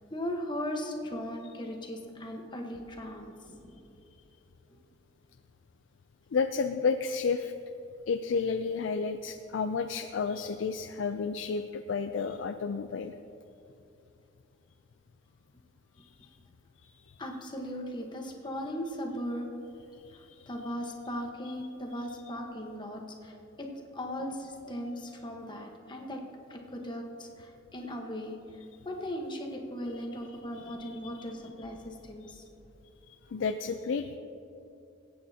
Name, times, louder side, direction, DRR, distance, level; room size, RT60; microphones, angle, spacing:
voice 1, 0.1-3.7 17.2-19.5 20.5-23.7 23.9-26.2 26.5-28.4 28.8-32.4, equal, 25° left, 2 dB, 1.1 m, -38 dB
voice 2, 6.3-7.5 8.1-13.2 16.0-16.4 16.8-17.3 19.9-20.5 21.4-21.5 29.9-31.3 32.2-32.3 33.1-34.2, left 5 dB, 80° left, 8 dB, 0.4 m, -32 dB
23.0 x 8.6 x 2.8 m, 2.8 s
head